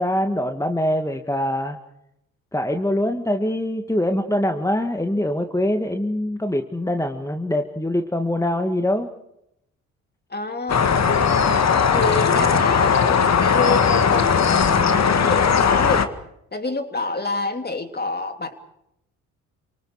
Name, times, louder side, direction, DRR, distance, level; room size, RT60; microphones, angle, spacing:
voice 1, 0.0-1.8 2.5-9.1, left 1 dB, 10° left, 5 dB, 2.1 m, -23 dB
voice 2, 10.3-10.9 11.4-14.6 15.2-16.1 16.5-18.5, left 3 dB, 25° left, 6 dB, 3.3 m, -28 dB
sound 1, 10.7-16.1, left 6 dB, 40° left, 2.0 m, -18 dB
29.0 x 26.0 x 5.0 m, 0.80 s
figure-of-eight pair, 45°, 41 cm